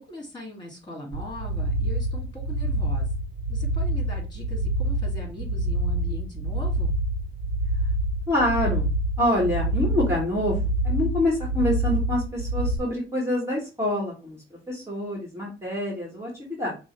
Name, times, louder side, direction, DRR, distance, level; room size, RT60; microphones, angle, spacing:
voice 1, 0.0-3.1 3.5-6.9, left 1 dB, 20° left, -1 dB, 2.3 m, -40 dB
sound 1, 1.1-12.8, right 1 dB, 75° right, 0.7 m, -26 dB
voice 2, 8.3-8.9 9.2-16.8, left 1 dB, 15° right, -2 dB, 1.5 m, -26 dB
5.9 x 2.1 x 3.2 m, 0.32 s
cardioid pair, 90°, 20 cm